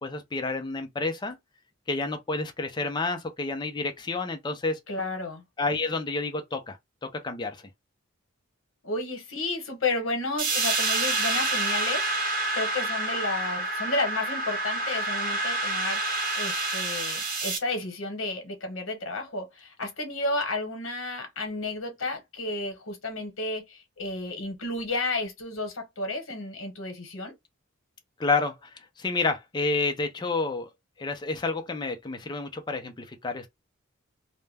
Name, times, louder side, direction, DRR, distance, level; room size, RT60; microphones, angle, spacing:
voice 1, 0.0-1.4 1.9-4.8 5.6-6.8 7.0-7.6 28.2-28.7 29.0-30.7 31.0-33.5, left 3 dB, 20° left, 0.4 m, -29 dB
voice 2, 4.9-5.4 8.8-12.1 12.5-16.0 16.3-27.3, left 2 dB, 80° left, 0.9 m, -32 dB
sound 1, 10.4-17.6, right 2 dB, 45° right, 0.9 m, -28 dB
2.2 x 2.1 x 3.2 m
head